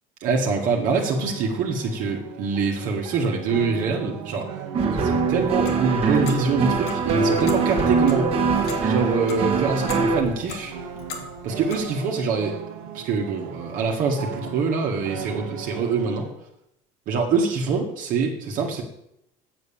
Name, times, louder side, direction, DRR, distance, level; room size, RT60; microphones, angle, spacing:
voice 1, 0.2-4.5 4.9-8.3 8.8-10.7 11.4-12.6 12.9-16.3 17.1-18.8, right 4 dB, 55° right, 0 dB, 1.7 m, -24 dB
sound 1, 0.9-16.3, right 7 dB, 90° right, 1.4 m, -38 dB
sound 2, 4.7-10.2, right 4 dB, 40° right, 1.8 m, -22 dB
Clock, 5.4-11.9, left 4 dB, 70° left, 2.1 m, -39 dB
8.5 x 6.7 x 7.3 m, 0.79 s
supercardioid pair, 115°, 16 cm